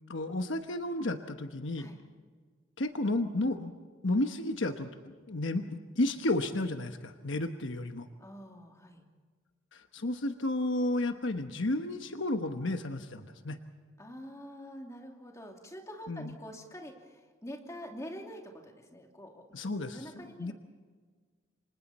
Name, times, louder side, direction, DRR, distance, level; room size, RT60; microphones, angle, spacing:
voice 1, 0.1-1.9 2.8-3.7 4.0-4.9 5.3-8.1 9.7-13.6 16.1-16.4 19.5-20.5, left 1 dB, 65° left, 6 dB, 1.2 m, -32 dB
voice 2, 8.2-9.0 14.0-19.6 19.9-20.5, equal, 15° left, 1 dB, 2.9 m, -46 dB
29.5 x 25.5 x 4.3 m, 1.5 s
head